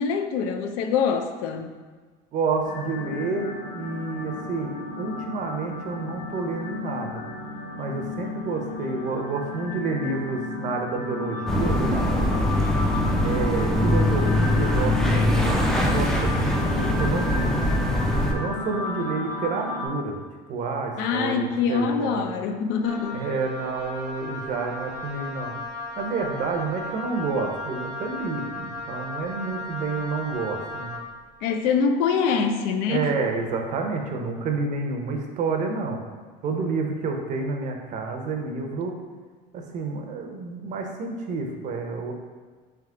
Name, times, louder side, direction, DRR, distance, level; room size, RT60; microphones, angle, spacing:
voice 1, 0.0-1.8 21.0-23.2 31.4-33.1, left 6 dB, 75° left, 7 dB, 0.4 m, -24 dB
voice 2, 2.3-7.2 7.8-12.5 13.2-17.6 18.3-20.2 20.5-22.3 23.1-25.5 26.0-30.9 32.9-36.0 36.4-38.9 39.5-42.1, right 4 dB, 45° right, 2 dB, 0.6 m, -29 dB
sound 1, 2.6-19.9, left 3 dB, 60° left, 1.2 m, -33 dB
sound 2, 11.5-18.3, left 1 dB, 5° left, 0.4 m, -22 dB
Wind instrument woodwind instrument, 22.8-31.1, left 2 dB, 40° left, 1.2 m, -36 dB
3.4 x 3.2 x 3.6 m, 1.4 s
cardioid pair, 135°, 18 cm